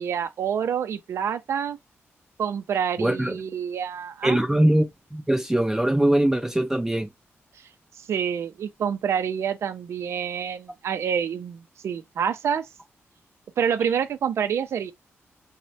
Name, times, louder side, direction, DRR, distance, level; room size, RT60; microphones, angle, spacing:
voice 1, 0.0-1.8 2.4-4.4 7.6-7.7 8.0-12.7 13.6-14.9, right 8 dB, 70° right, 0.4 m, -27 dB
voice 2, 3.0-3.3 4.2-7.1, right 1 dB, 10° right, 0.4 m, -22 dB
3.1 x 2.1 x 2.6 m
cardioid pair, 110°, 5 cm